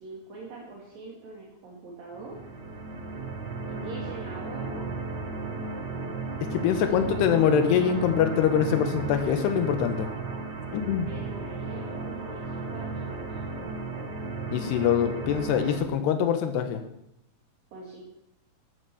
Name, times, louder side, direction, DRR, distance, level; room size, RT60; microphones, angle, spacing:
voice 1, 0.0-2.5 3.7-4.9 6.8-7.1 10.9-13.4 17.7-18.0, right 3 dB, 60° right, -3 dB, 4.1 m, -43 dB
sound 1, 2.1-15.8, right 3 dB, 75° right, 0.9 m, -35 dB
voice 2, 6.4-10.1 10.7-11.1 14.5-16.8, left 8 dB, 90° left, 8 dB, 3.3 m, -24 dB
14.0 x 11.0 x 7.0 m, 0.80 s
omnidirectional pair, 4.6 m